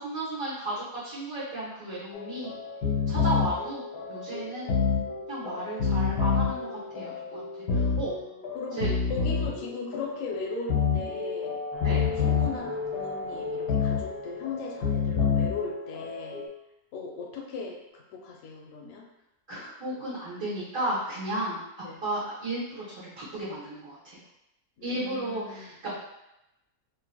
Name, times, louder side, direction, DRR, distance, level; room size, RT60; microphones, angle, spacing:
voice 1, 0.0-2.5 3.1-3.8 4.1-4.7 5.3-7.4 7.7-8.1 8.8-8.9 11.8-12.0 19.5-21.6 22.0-24.2 24.8-25.9, right 1 dB, 60° right, -11 dB, 1.5 m, -34 dB
sound 1, 2.1-16.5, left 5 dB, 85° left, 1.1 m, -29 dB
voice 2, 9.1-11.6 12.2-16.4 16.9-19.1 19.5-19.8 21.8-22.0 24.8-25.7, left 4 dB, 65° left, 0 dB, 0.8 m, -38 dB
sound 2, 11.7-15.1, left 4 dB, ahead, 0.4 m, -48 dB
3.9 x 2.5 x 2.2 m, 0.90 s
omnidirectional pair, 1.6 m